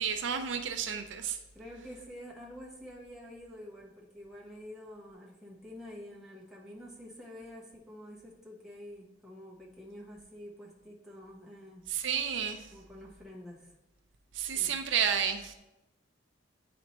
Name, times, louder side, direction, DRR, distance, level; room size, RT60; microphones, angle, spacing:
voice 1, 0.0-1.4 11.9-12.7 14.3-15.5, right 7 dB, 70° right, 7 dB, 0.5 m, -31 dB
voice 2, 1.5-11.8 12.7-13.7 14.4-14.8, left 1 dB, ahead, -4 dB, 1.0 m, -48 dB
9.8 x 4.2 x 2.9 m, 0.97 s
head